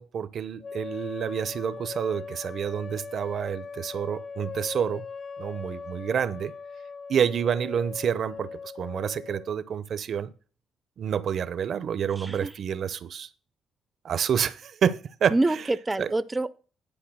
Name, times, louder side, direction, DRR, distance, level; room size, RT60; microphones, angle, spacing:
voice 1, 0.0-5.1 5.4-6.5 7.1-10.3 11.0-13.3 14.0-15.3 16.0-16.1, right 8 dB, 60° right, 0.7 m, -28 dB
sound 1, 0.6-9.6, left 5 dB, 35° left, 0.3 m, -40 dB
voice 2, 12.2-12.6 15.3-16.5, right 2 dB, 15° right, 0.6 m, -26 dB
11.0 x 4.8 x 6.2 m
cardioid pair, 90°, 0 cm